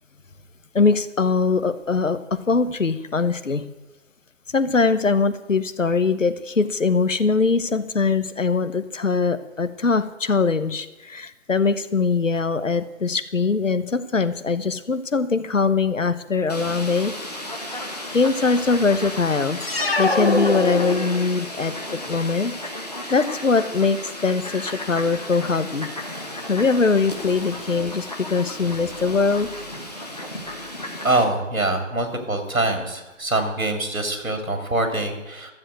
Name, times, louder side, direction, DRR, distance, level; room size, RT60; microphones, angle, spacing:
voice 1, 0.7-3.6 4.5-17.1 18.1-19.7 20.0-25.9 26.5-29.5, left 4 dB, 70° left, 12 dB, 1.1 m, -22 dB
Fowl, 16.5-31.3, left 1 dB, 30° left, 1.2 m, -34 dB
sound 1, 19.6-21.5, left 2 dB, 45° left, 1.3 m, -23 dB
voice 2, 31.0-35.5, right 2 dB, 80° right, 5 dB, 3.2 m, -24 dB
13.0 x 7.4 x 7.8 m, 1.1 s
figure-of-eight pair, 175°, 40 cm